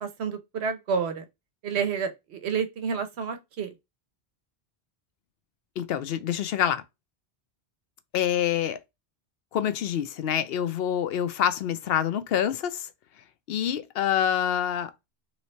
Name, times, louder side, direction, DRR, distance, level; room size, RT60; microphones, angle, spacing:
voice 1, 0.0-1.2 1.6-3.7, right 6 dB, 80° right, 1.1 m, -29 dB
voice 2, 5.8-6.8 8.1-8.8 9.5-12.9 13.5-14.9, left 9 dB, 70° left, 0.8 m, -26 dB
3.2 x 3.2 x 4.1 m
omnidirectional pair, 1.1 m